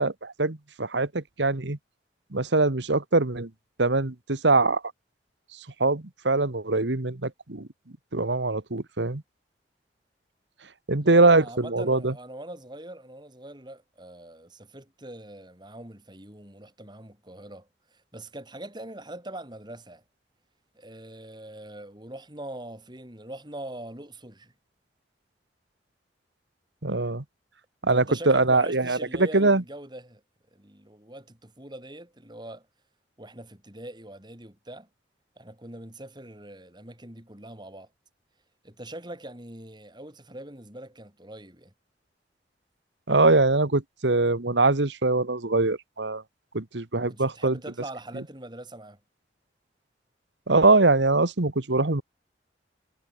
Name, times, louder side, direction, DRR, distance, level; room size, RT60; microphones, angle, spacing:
voice 1, 0.0-1.8 2.3-3.5 3.8-4.8 5.8-7.7 8.1-9.2 10.9-12.1 26.8-27.2 27.8-29.6 43.1-46.2 46.5-47.5 50.5-52.0, right 3 dB, 80° right, 1.7 m, -22 dB
voice 2, 11.0-20.0 20.7-24.5 27.9-30.2 30.5-32.7 33.2-34.9 35.4-37.9 38.6-41.7 47.0-49.0, right 1 dB, 25° right, 4.7 m, -42 dB
head